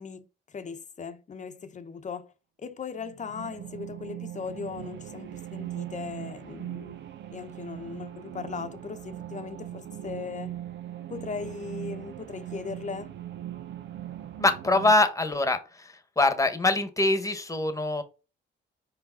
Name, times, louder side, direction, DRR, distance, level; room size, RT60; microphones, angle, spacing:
voice 1, 0.0-2.3 2.6-7.0 7.3-10.6 11.1-13.1, left 5 dB, 40° left, 0.9 m, -38 dB
sound 1, 3.0-14.9, right 12 dB, 65° right, 0.7 m, -40 dB
voice 2, 14.4-15.9 16.2-18.0, left 2 dB, 15° left, 1.3 m, -24 dB
5.0 x 4.9 x 3.9 m
cardioid pair, 90°, 20 cm